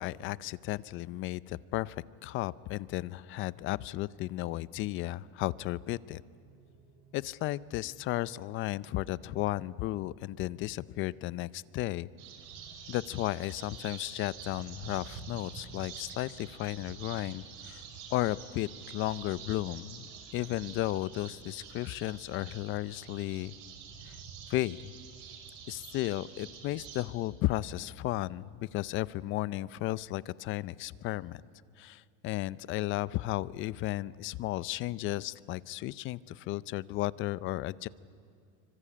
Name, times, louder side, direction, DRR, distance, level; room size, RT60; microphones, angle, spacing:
voice 1, 0.0-6.2 7.1-12.1 12.9-17.8 18.1-23.5 24.1-24.2 24.5-24.9 25.7-31.4 31.8-37.9, left 16 dB, 40° left, 20 dB, 0.6 m, -34 dB
sound 1, 4.6-19.1, right 4 dB, 40° right, 6.8 m, -64 dB
sound 2, 12.2-27.1, right 7 dB, 65° right, 4.9 m, -47 dB
25.5 x 25.0 x 8.6 m, 2.5 s
cardioid pair, 150°, 31 cm